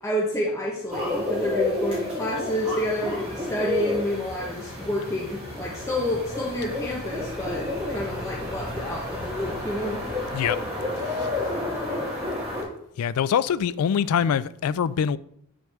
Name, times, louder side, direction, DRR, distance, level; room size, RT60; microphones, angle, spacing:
voice 1, 0.0-10.0, left 1 dB, 15° left, 1.0 m, -29 dB
sound 1, 0.9-12.6, left 2 dB, 25° right, 3.3 m, -31 dB
voice 2, 13.0-15.2, left 8 dB, 85° left, 0.3 m, -24 dB
8.9 x 6.3 x 3.4 m
head